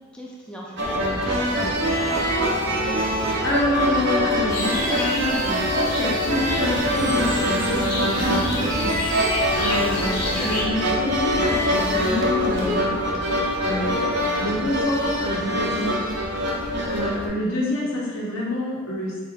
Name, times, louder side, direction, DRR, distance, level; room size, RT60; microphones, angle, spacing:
voice 1, 0.1-2.3 9.5-9.8, equal, 5° left, -4 dB, 0.4 m, -40 dB
sound 1, 0.8-17.3, equal, 60° right, 0.6 m, -23 dB
voice 2, 3.4-12.9 13.6-15.9 16.9-19.1, left 1 dB, 80° left, -5 dB, 1.0 m, -27 dB
sound 2, 4.5-10.6, left 1 dB, 50° left, 0.7 m, -31 dB
3.2 x 2.5 x 3.9 m, 1.5 s
head